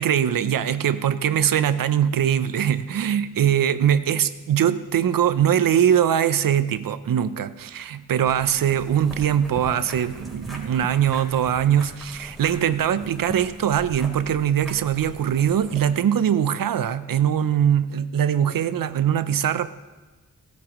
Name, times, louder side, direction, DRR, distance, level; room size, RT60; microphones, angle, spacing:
voice 1, 0.0-19.7, right 9 dB, 75° right, 13 dB, 0.7 m, -22 dB
sound 1, 8.2-16.0, equal, ahead, 3.7 m, -40 dB
17.0 x 11.5 x 3.1 m, 1.2 s
cardioid pair, 60°, 34 cm